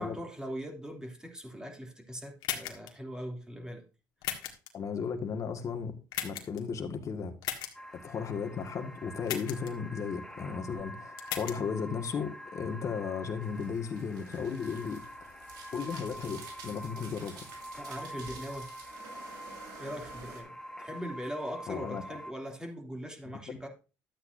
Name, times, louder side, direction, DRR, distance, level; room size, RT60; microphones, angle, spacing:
voice 1, 0.0-3.8 17.8-18.7 19.8-23.7, equal, 10° right, 3.0 m, -41 dB
sound 1, 2.4-2.9 4.2-4.7 6.1-6.6 7.4-7.7 9.3-9.7 11.2-11.6, left 11 dB, 85° left, 1.6 m, -35 dB
voice 2, 4.7-6.0 6.2-7.3 7.9-15.4 15.7-17.5 21.7-22.2 23.3-23.6, left 6 dB, 50° left, 1.9 m, -35 dB
sound 2, 7.7-22.3, equal, 10° left, 1.2 m, -46 dB
sound 3, 13.4-20.4, right 4 dB, 85° right, 3.2 m, -50 dB
12.0 x 8.5 x 2.7 m
cardioid pair, 90°, 7 cm